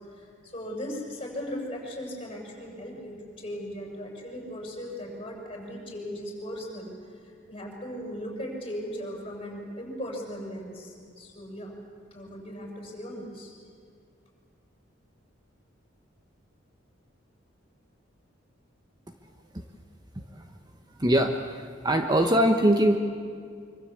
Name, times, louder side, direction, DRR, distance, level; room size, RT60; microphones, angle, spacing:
voice 1, 0.1-11.7 12.1-13.5, equal, 30° left, 0 dB, 7.2 m, -38 dB
voice 2, 21.0-23.0, right 1 dB, 20° right, 5 dB, 1.1 m, -22 dB
25.5 x 25.5 x 8.5 m, 2.2 s
head